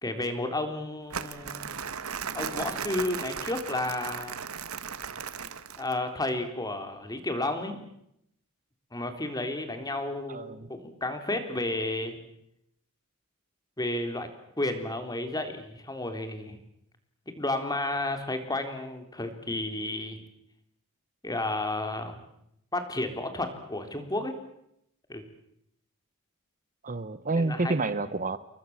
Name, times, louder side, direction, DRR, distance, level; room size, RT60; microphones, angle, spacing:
voice 1, 0.0-1.7 2.3-4.5 5.8-7.9 8.9-12.2 13.8-14.3 14.6-16.6 17.3-20.2 21.2-22.2 22.7-24.3 25.1-25.2 27.3-27.8, left 2 dB, 20° left, 7 dB, 3.7 m, -32 dB
Crumpling crinkling, 1.1-6.0, right 6 dB, 85° right, 1.6 m, -36 dB
voice 2, 10.3-10.7 26.8-28.4, right 3 dB, 40° right, 13 dB, 1.0 m, -29 dB
30.0 x 22.5 x 7.4 m, 0.77 s
head